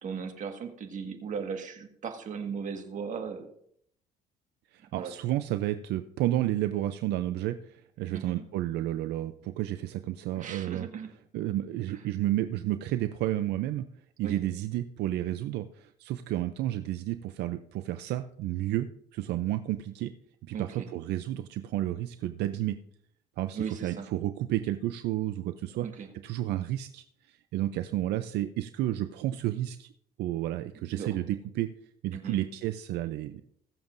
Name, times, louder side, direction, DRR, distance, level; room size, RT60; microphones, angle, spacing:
voice 1, 0.0-3.5 4.9-5.1 8.1-8.5 10.4-11.1 14.2-14.4 20.5-20.9 23.5-24.1 25.8-26.1 30.9-31.2 32.1-32.4, right 6 dB, 50° right, 5 dB, 1.7 m, -37 dB
voice 2, 4.7-10.9 11.3-13.9 14.2-20.1 20.5-22.8 23.4-29.9 30.2-31.7 32.0-33.4, right 14 dB, 80° right, 10 dB, 0.6 m, -31 dB
21.5 x 7.2 x 2.6 m, 0.70 s
cardioid pair, 110°, 17 cm